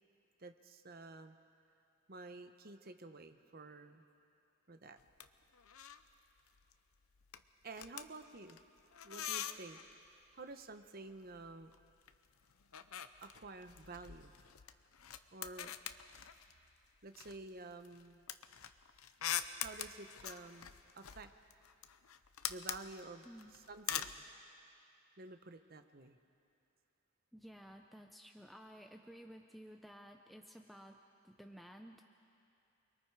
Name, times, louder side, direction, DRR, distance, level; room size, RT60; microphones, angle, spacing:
voice 1, 0.4-1.3 2.1-4.0 4.7-5.0 7.6-8.6 9.0-9.8 10.3-11.7 13.2-14.3 15.3-15.7 17.0-18.2 19.6-21.3 22.5-23.3 23.7-24.3 25.2-26.2, right 3 dB, 45° right, 8 dB, 0.9 m, -51 dB
sound 1, 5.0-5.3 5.5-6.1 6.4-6.7 7.0-9.9 11.1-12.2 12.4-16.7 17.1-24.2, left 10 dB, 85° left, 0.7 m, -44 dB
voice 2, 27.3-31.0 31.2-32.0, equal, ahead, 3 dB, 0.6 m, -54 dB
29.0 x 22.0 x 4.7 m, 2.6 s
head